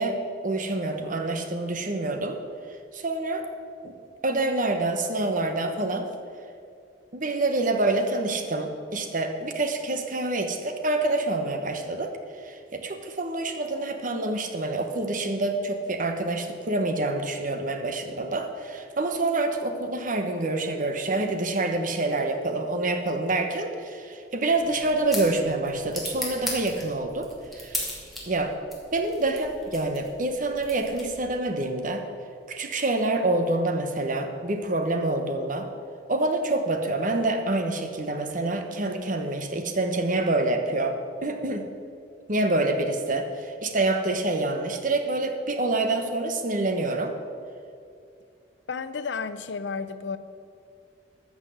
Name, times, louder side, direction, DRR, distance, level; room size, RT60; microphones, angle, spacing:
voice 1, 0.0-2.4 2.9-3.5 3.8-3.9 4.2-6.1 7.1-12.1 12.4-27.8 28.3-28.5 28.9-32.0 32.5-35.7 36.1-41.7 42.3-47.1, right 2 dB, 50° right, 6 dB, 1.1 m, -27 dB
sound 1, 24.5-31.4, left 1 dB, ahead, 2.6 m, -38 dB
voice 2, 48.7-50.2, left 5 dB, 75° left, 12 dB, 0.6 m, -32 dB
13.5 x 6.1 x 7.8 m, 2.4 s
head